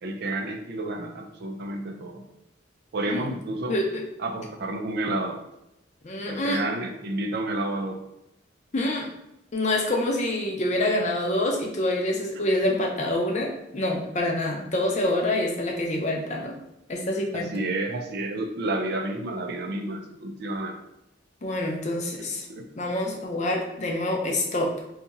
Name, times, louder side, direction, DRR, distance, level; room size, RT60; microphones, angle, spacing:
voice 1, 0.0-2.3 2.9-3.8 4.2-5.4 6.3-8.0 12.3-12.4 17.3-20.7 22.5-22.7, right 2 dB, 55° right, 3 dB, 0.5 m, -30 dB
voice 2, 3.7-4.0 6.0-6.6 8.7-9.1 9.5-16.6 16.9-17.5 21.4-22.4 22.8-24.7, left 1 dB, 40° left, 0 dB, 0.6 m, -26 dB
2.7 x 2.4 x 4.0 m, 0.85 s
head